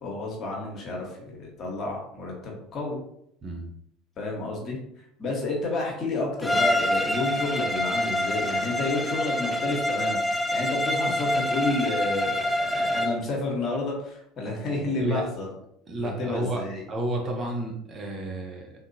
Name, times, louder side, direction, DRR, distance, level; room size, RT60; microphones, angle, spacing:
voice 1, 0.0-3.0 4.2-4.8 5.2-15.5 16.0-16.9, left 2 dB, 40° left, -1 dB, 1.4 m, -30 dB
Bowed string instrument, 6.4-13.2, left 1 dB, 5° left, 0.5 m, -26 dB
voice 2, 15.9-18.7, right 1 dB, 35° right, 1 dB, 0.9 m, -31 dB
3.8 x 2.9 x 2.7 m, 0.72 s
hypercardioid pair, 70°, 0 cm